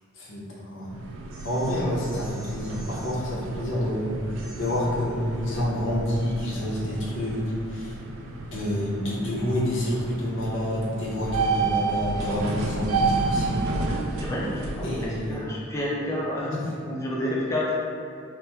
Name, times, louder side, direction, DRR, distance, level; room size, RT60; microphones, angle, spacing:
voice 1, 0.1-0.9 1.4-7.9 8.5-13.6 14.8-15.4 16.5-16.7, left 1 dB, 60° left, -6 dB, 0.7 m, -28 dB
sound 1, 0.8-15.3, right 3 dB, 70° right, 0.3 m, -31 dB
voice 2, 14.2-16.5 16.9-17.7, left 1 dB, 15° left, -6 dB, 0.5 m, -30 dB
2.9 x 2.1 x 3.4 m, 2.4 s
head